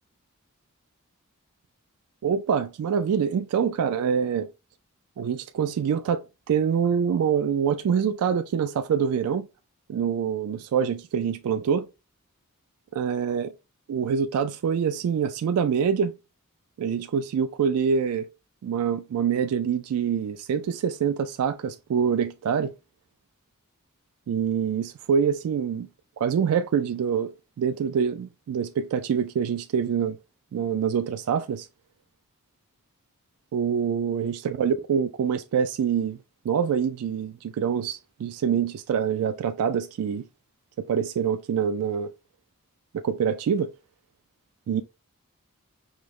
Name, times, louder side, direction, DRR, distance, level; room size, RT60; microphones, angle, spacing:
voice 1, 2.2-4.5 5.2-9.5 9.9-11.9 12.9-13.5 13.9-16.1 16.8-18.3 18.6-22.7 24.3-25.9 26.2-27.3 27.6-30.2 30.5-31.7 33.5-36.2 36.4-40.2 40.8-42.1 42.9-43.7 44.7-44.8, right 7 dB, 75° right, 0.3 m, -25 dB
5.1 x 2.0 x 3.0 m
head